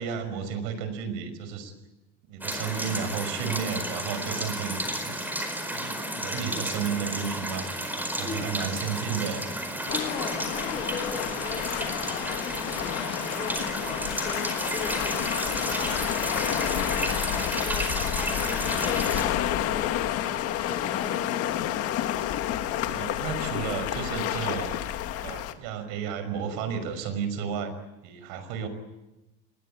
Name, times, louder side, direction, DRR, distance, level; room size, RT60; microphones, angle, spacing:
voice 1, 0.0-1.7 2.3-5.3 5.7-7.7 8.0-9.5 22.8-24.8 25.2-27.7 28.0-28.7, right 7 dB, 80° right, 10 dB, 5.8 m, -33 dB
sound 1, 2.4-19.2, right 1 dB, 5° right, 4.7 m, -32 dB
voice 2, 8.3-8.6 9.9-21.8, left 4 dB, 20° left, 3 dB, 3.5 m, -39 dB
sound 2, 9.9-25.5, left 12 dB, 50° left, 2.0 m, -30 dB
29.0 x 21.5 x 8.8 m, 1.0 s
cardioid pair, 165°, 30 cm